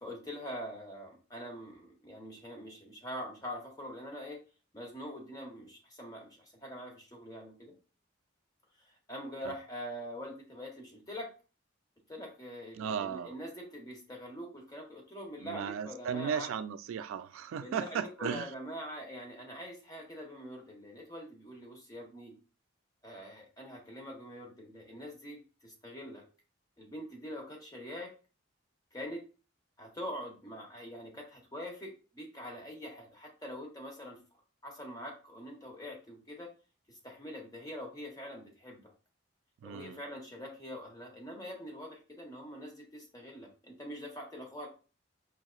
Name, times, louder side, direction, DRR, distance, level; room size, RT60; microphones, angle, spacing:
voice 1, 0.0-4.4 4.7-7.7 8.8-11.3 12.1-16.5 17.6-22.3 23.0-26.2 26.8-28.1 28.9-29.2 29.8-34.2 34.6-36.5 36.9-38.9 39.6-44.7, equal, 20° left, 0.9 m, -44 dB
voice 2, 12.7-13.3 15.4-18.5 39.6-40.0, right 7 dB, 85° right, 0.3 m, -36 dB
4.7 x 2.9 x 2.4 m
head